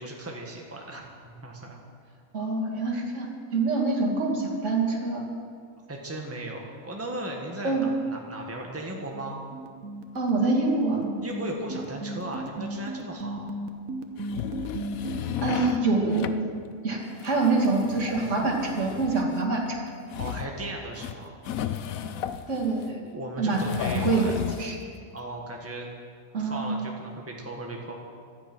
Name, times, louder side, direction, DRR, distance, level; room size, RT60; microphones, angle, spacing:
voice 1, 0.0-1.8 5.9-9.4 11.2-13.5 15.5-15.9 17.2-17.4 20.2-21.3 23.1-24.3 25.1-25.9 26.4-27.9, right 1 dB, 10° right, 0 dB, 1.7 m, -37 dB
voice 2, 2.3-3.3 3.5-5.2 7.6-7.9 10.1-11.0 15.4-16.3 16.8-19.8 22.5-23.0 23.4-23.6 23.9-24.3 24.6-24.8 26.3-26.6, right 3 dB, 55° right, -1 dB, 2.7 m, -25 dB
sound 1, 8.9-15.2, right 2 dB, 75° right, 1.5 m, -35 dB
sound 2, 14.2-15.9 16.1-16.4 17.1-22.9 23.5-24.7, left 10 dB, 75° left, 1.1 m, -33 dB
18.0 x 12.5 x 6.2 m, 2.2 s
omnidirectional pair, 1.5 m